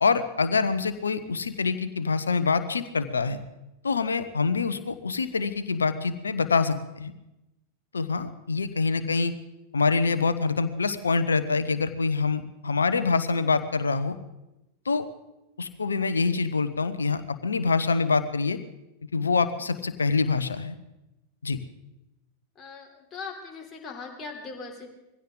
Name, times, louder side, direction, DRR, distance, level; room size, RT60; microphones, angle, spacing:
voice 1, 0.0-3.4 3.8-7.1 7.9-9.3 9.7-14.2 14.8-15.1 15.6-18.6 19.1-20.7 21.4-21.6, left 4 dB, 75° left, 11 dB, 0.9 m, -25 dB
voice 2, 22.6-24.9, left 4 dB, 20° left, 0 dB, 3.5 m, -40 dB
21.0 x 16.0 x 3.9 m, 0.94 s
figure-of-eight pair, 90°, 0 cm